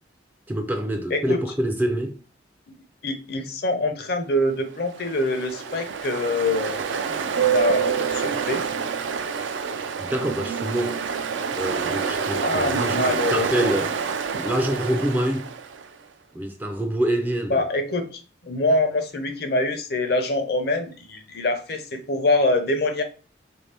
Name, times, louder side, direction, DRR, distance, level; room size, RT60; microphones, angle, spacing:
voice 1, 0.5-2.2 10.0-11.0 11.6-15.5 16.3-17.6, right 1 dB, 10° right, 0.3 m, -26 dB
voice 2, 3.0-6.8 7.3-8.6 12.4-13.8 17.5-18.1 18.4-23.0, left 2 dB, 55° left, 0.6 m, -24 dB
Ocean, 4.8-15.9, right 6 dB, 80° right, 0.4 m, -27 dB
3.5 x 2.7 x 3.3 m
head